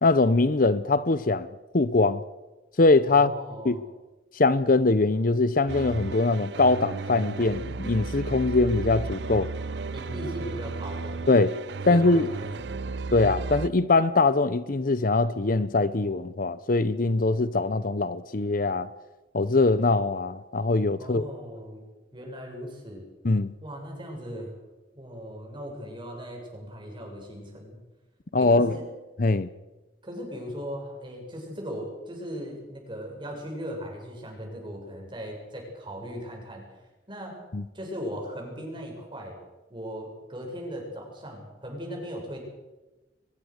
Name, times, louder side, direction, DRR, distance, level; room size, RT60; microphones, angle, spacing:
voice 1, 0.0-1.5 1.7-2.2 2.8-3.3 3.6-3.8 4.3-9.5 11.3-11.5 11.9-12.3 13.1-18.9 19.3-21.2 23.2-23.5 28.3-28.7 29.2-29.5 37.5-37.6, left 3 dB, 50° left, 0.8 m, -22 dB
voice 2, 3.1-3.8 9.9-11.2 11.9-13.0 21.0-21.8 22.1-23.1 23.6-24.5 24.9-27.8 28.4-28.9 30.0-36.6 37.1-37.4 37.7-39.4 39.7-42.4, equal, 25° right, 7.4 m, -38 dB
sound 1, 5.7-13.7, right 4 dB, 70° right, 0.6 m, -34 dB
23.5 x 21.5 x 6.6 m
head